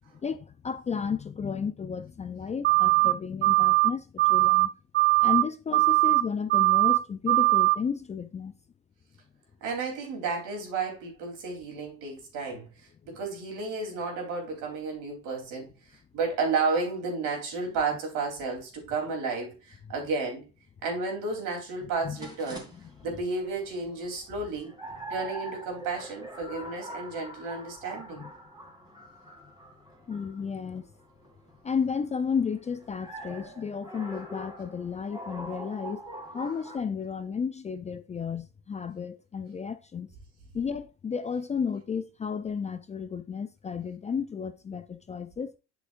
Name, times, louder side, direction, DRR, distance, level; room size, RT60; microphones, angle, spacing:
voice 1, 0.2-4.7 5.2-8.5 22.0-22.6 28.2-28.3 30.1-30.8 31.6-36.0 36.3-40.1 40.5-45.6, left 6 dB, 20° left, 0.5 m, -33 dB
sound 1, 2.6-3.1 3.4-3.9 4.2-4.7 4.9-5.4 5.7-6.2 6.5-7.0 7.3-7.8, right 24 dB, 35° right, 0.5 m, -21 dB
voice 2, 9.6-15.7 16.1-20.5 20.8-22.7 23.0-24.7 25.1-28.3, right 4 dB, 65° right, 3.6 m, -32 dB
sound 2, 22.1-36.8, right 1 dB, 10° right, 2.7 m, -44 dB
8.2 x 6.2 x 2.6 m
hypercardioid pair, 85°, 34 cm